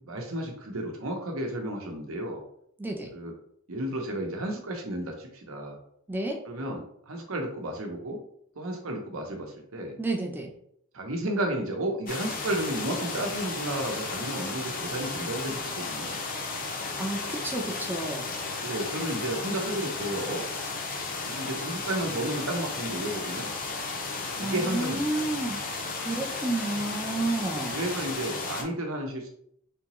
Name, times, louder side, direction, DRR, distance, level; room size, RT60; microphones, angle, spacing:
voice 1, 0.0-2.4 3.1-3.3 3.7-5.8 6.5-8.2 8.6-10.0 10.9-16.1 18.6-20.4 21.2-23.5 24.4-25.2 27.5-29.3, right 1 dB, 75° right, 3 dB, 0.8 m, -32 dB
voice 2, 2.8-3.1 6.1-6.4 10.0-10.5 17.0-18.3 24.4-27.8, right 2 dB, 10° right, 1 dB, 0.5 m, -31 dB
sound 1, 12.1-28.6, left 3 dB, 40° left, 0.6 m, -34 dB
3.5 x 2.9 x 3.0 m, 0.67 s
head